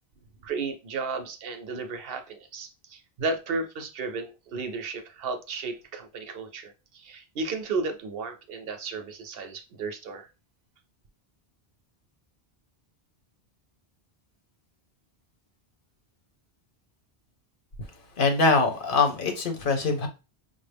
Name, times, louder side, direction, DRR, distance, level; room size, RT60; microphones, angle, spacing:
voice 1, 0.4-10.3, right 4 dB, 65° right, 0.8 m, -34 dB
voice 2, 18.2-20.1, left 3 dB, 60° left, 0.9 m, -23 dB
5.4 x 2.0 x 3.3 m
omnidirectional pair, 1.1 m